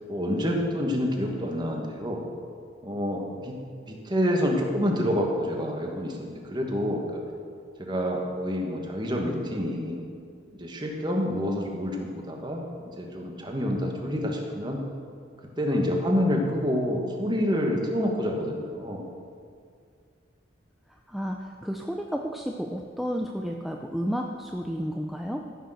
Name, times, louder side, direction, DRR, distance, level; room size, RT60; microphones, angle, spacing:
voice 1, 0.1-2.2 2.8-3.6 3.9-7.2 7.8-10.0 10.5-12.7 13.0-14.8 15.6-19.0, equal, 25° right, 1 dB, 1.5 m, -28 dB
voice 2, 20.9-25.4, equal, ahead, 1 dB, 0.5 m, -32 dB
14.5 x 6.6 x 6.5 m, 2.2 s
head